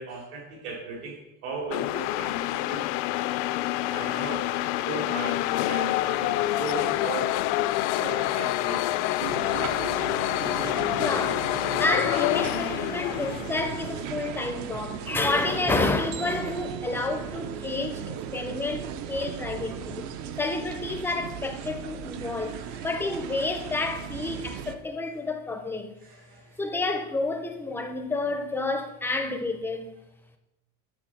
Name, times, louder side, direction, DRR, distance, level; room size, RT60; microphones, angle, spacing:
voice 1, 0.0-2.8 3.8-5.4 5.7-7.3 7.9-8.9 22.5-22.8 26.0-26.5, right 3 dB, 70° right, 2.7 m, -37 dB
sound 1, 1.7-14.0, left 15 dB, 80° left, 0.5 m, -27 dB
sound 2, 9.2-24.8, right 8 dB, 55° right, 0.6 m, -37 dB
voice 2, 10.9-20.1 20.4-25.9 26.6-29.9, left 3 dB, 5° left, 0.5 m, -30 dB
10.0 x 4.3 x 7.2 m
cardioid pair, 175°, 35 cm